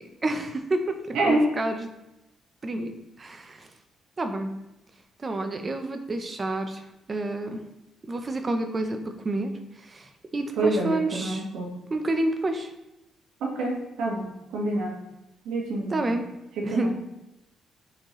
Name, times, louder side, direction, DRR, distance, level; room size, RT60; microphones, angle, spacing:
voice 1, 0.0-1.9 2.6-2.9 3.2-3.7 4.2-4.5 5.2-6.8 7.1-7.6 8.1-9.5 9.9-11.4 11.9-12.7 15.9-16.2 16.6-16.9, right 2 dB, 30° right, 6 dB, 0.8 m, -29 dB
voice 2, 1.1-1.5 10.6-11.7 13.4-14.9 15.4-16.0 16.6-16.9, right 2 dB, 85° right, -1 dB, 1.6 m, -27 dB
7.6 x 4.4 x 3.1 m, 0.93 s
cardioid pair, 90°, 0 cm